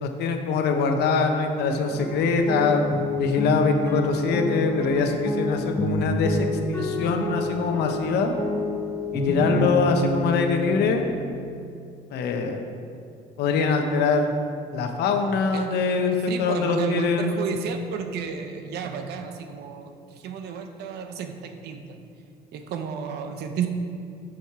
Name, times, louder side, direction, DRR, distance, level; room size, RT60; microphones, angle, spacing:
voice 1, 0.0-2.8 3.2-8.3 9.1-11.1 12.1-12.6 13.4-14.3 14.7-17.3, left 4 dB, 75° left, 5 dB, 0.9 m, -23 dB
sound 1, 1.9-11.2, left 1 dB, 15° left, 1.1 m, -28 dB
voice 2, 16.3-19.9 20.2-22.0 22.5-23.7, right 6 dB, 75° right, 6 dB, 0.8 m, -32 dB
7.1 x 6.4 x 4.7 m, 2.5 s
cardioid pair, 110°, 17 cm